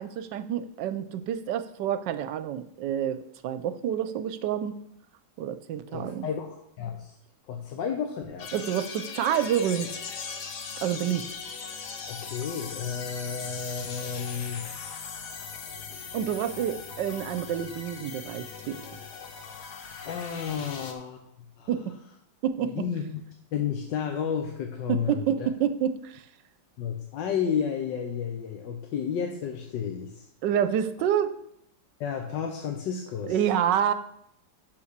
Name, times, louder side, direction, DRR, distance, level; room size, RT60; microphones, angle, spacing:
voice 1, 0.0-4.8 5.4-6.3 8.5-9.9 10.8-11.3 16.1-18.8 21.7-21.9 22.4-22.9 24.9-26.2 30.4-31.4 33.3-33.9, right 9 dB, 80° right, 12 dB, 1.3 m, -28 dB
voice 2, 5.9-7.2 7.5-8.6 12.1-14.7 20.0-21.2 21.6-21.7 22.6-23.0 23.5-25.5 26.8-30.3 32.0-33.4, left 7 dB, 85° left, 3 dB, 1.5 m, -32 dB
sound 1, 8.4-20.9, left 6 dB, 65° left, 1.5 m, -39 dB
6.1 x 5.9 x 6.5 m, 0.73 s
omnidirectional pair, 1.9 m